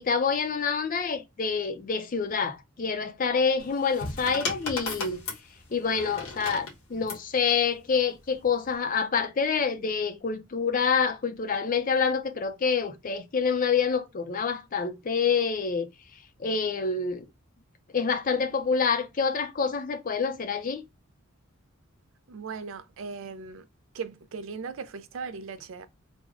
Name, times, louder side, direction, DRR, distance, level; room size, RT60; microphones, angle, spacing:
voice 1, 0.0-5.2 5.7-15.9 16.4-17.2 17.9-20.8, left 5 dB, 40° left, 0.5 m, -27 dB
sound 1, 3.6-7.3 8.3-8.7, left 3 dB, 90° left, 1.2 m, -36 dB
voice 2, 22.3-23.6 23.9-25.9, right 5 dB, 65° right, 0.4 m, -38 dB
3.5 x 2.1 x 3.5 m
head